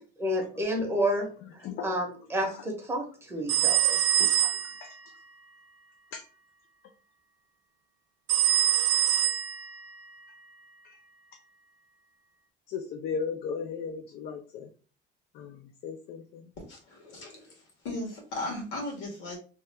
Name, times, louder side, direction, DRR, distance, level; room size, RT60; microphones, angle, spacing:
voice 1, 0.2-1.3 1.8-4.0, equal, 15° right, 0.7 m, -30 dB
sound 1, 3.5-4.9 8.3-9.9, right 13 dB, 75° right, 0.5 m, -24 dB
voice 2, 12.7-14.7 15.4-15.5 15.8-16.4, left 6 dB, 55° left, 0.4 m, -35 dB
voice 3, 16.7-19.4, left 1 dB, 80° left, 1.4 m, -37 dB
2.9 x 2.2 x 3.2 m
cardioid pair, 165°, 19 cm